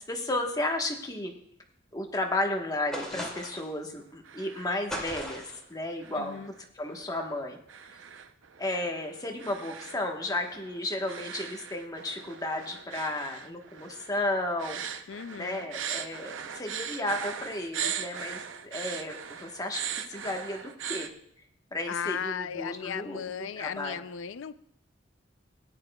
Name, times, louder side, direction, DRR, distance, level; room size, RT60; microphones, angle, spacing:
voice 1, 0.0-1.3 1.9-6.4 6.7-7.6 8.6-15.0 15.4-19.8 20.1-21.1 21.7-24.0, left 1 dB, 20° left, 2 dB, 1.2 m, -33 dB
sound 1, 2.9-3.7 4.9-5.6, equal, 5° left, 2.4 m, -36 dB
sound 2, 4.0-4.8 5.1-5.6 6.0-21.1, right 8 dB, 90° right, 0.7 m, -40 dB
voice 2, 6.2-6.5 15.1-15.7 21.9-24.5, left 8 dB, 80° left, 14 dB, 0.4 m, -36 dB
17.0 x 9.9 x 2.3 m, 0.70 s
head